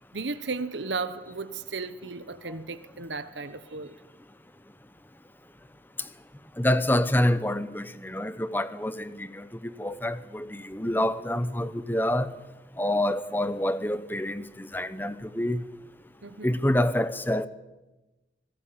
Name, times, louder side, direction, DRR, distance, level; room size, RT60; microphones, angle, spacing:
voice 1, 0.1-3.9 10.8-11.1 16.2-16.6, right 4 dB, 85° right, 1.2 m, -35 dB
voice 2, 6.6-12.3 12.8-15.6 16.4-17.5, left 1 dB, 10° left, 1.0 m, -27 dB
26.5 x 18.5 x 8.8 m
head